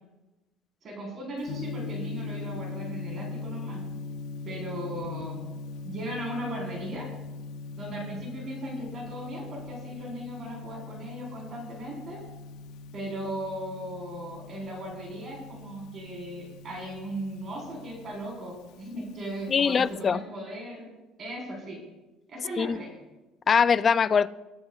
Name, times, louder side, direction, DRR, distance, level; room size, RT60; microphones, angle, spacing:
voice 1, 0.8-3.8 4.5-5.4 5.9-7.1 7.8-12.2 12.9-20.9 21.2-21.8 22.3-22.9, right 1 dB, 40° right, 4.2 m, -37 dB
Gong, 1.4-20.0, left 3 dB, 80° left, 0.8 m, -40 dB
voice 2, 19.5-20.2 22.6-22.8 23.5-24.3, left 6 dB, 30° left, 0.3 m, -22 dB
21.5 x 9.7 x 2.4 m
cardioid pair, 135°, 0 cm